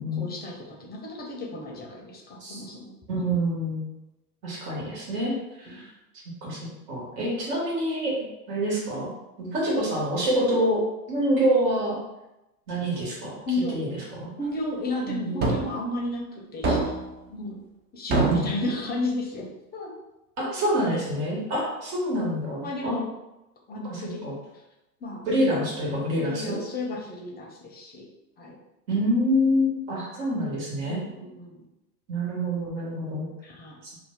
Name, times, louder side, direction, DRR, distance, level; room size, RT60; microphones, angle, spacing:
voice 1, 0.2-2.9 5.7-5.8 13.5-13.9 14.4-16.9 17.3-17.6 17.9-19.9 20.4-20.5 20.9-21.0 22.6-23.1 23.7-24.2 25.0-25.6 26.2-28.0 28.4-28.6 30.8-31.6 33.4-33.8, left 2 dB, 20° left, -1 dB, 0.7 m, -33 dB
voice 2, 3.1-3.8 4.4-5.9 6.4-6.6 6.9-8.1 8.5-9.1 9.4-10.8 11.1-12.0 12.7-13.4 13.7-14.3 15.1-15.5 18.2-18.5 20.4-23.0 23.8-24.3 25.3-26.6 28.9-31.0 32.1-33.3 33.8-34.0, equal, 60° right, -5 dB, 1.4 m, -26 dB
sound 1, 15.4-15.7 16.6-17.1 18.1-18.6, right 3 dB, 20° right, 0.5 m, -24 dB
2.7 x 2.1 x 3.6 m, 0.93 s
hypercardioid pair, 95°, 48 cm